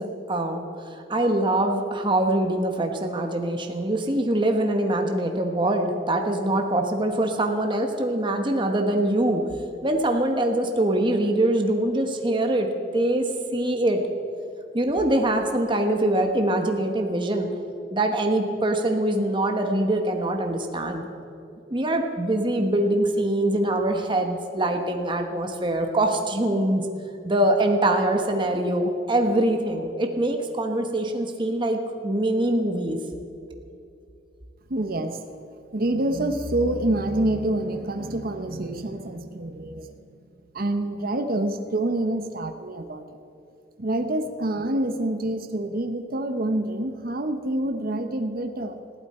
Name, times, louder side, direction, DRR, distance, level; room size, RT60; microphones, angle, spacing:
voice 1, 0.0-9.4 9.8-13.2 13.5-14.0 14.7-17.5 17.9-21.0 21.7-26.8 27.2-33.0, right 1 dB, 25° right, 4 dB, 1.2 m, -23 dB
voice 2, 34.7-35.4 35.7-39.9 40.5-43.0 43.8-48.8, right 1 dB, 55° right, 7 dB, 0.9 m, -27 dB
20.5 x 15.0 x 4.4 m, 2.7 s
head